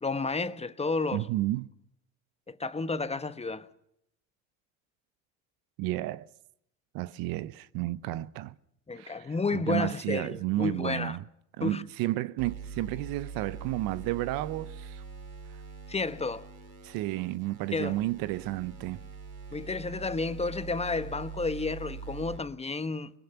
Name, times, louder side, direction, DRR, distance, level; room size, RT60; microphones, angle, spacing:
voice 1, 0.0-1.3 2.5-3.7 8.9-11.2 11.6-11.8 15.9-16.5 17.7-18.0 19.5-23.1, left 3 dB, 15° left, 1.1 m, -31 dB
voice 2, 1.1-1.7 5.8-6.3 6.9-8.6 9.0-11.2 11.6-15.0 16.8-19.0, right 16 dB, 60° right, 0.9 m, -32 dB
sound 1, 12.4-22.4, right 5 dB, 80° right, 5.1 m, -43 dB
23.0 x 21.5 x 5.8 m
hypercardioid pair, 85°, 40 cm